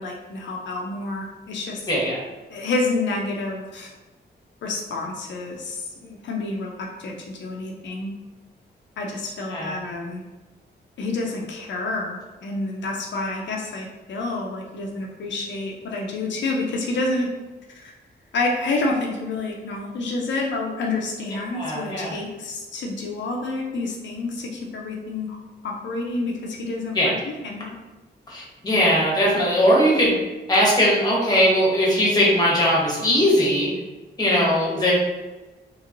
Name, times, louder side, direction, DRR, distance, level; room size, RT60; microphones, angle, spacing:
voice 1, 0.0-1.9 2.5-3.9 4.6-8.1 9.0-10.2 11.0-17.3 17.7-17.9 18.3-25.4 25.6-27.1 27.4-27.7, left 2 dB, 80° left, -1 dB, 0.5 m, -28 dB
voice 2, 1.9-2.2 9.5-9.7 21.5-22.1 26.9-27.1 28.3-30.1 30.5-33.7 34.2-34.9, equal, 20° left, -5 dB, 0.9 m, -19 dB
3.0 x 2.9 x 2.5 m, 1.2 s
wide cardioid pair, 150°, 19 cm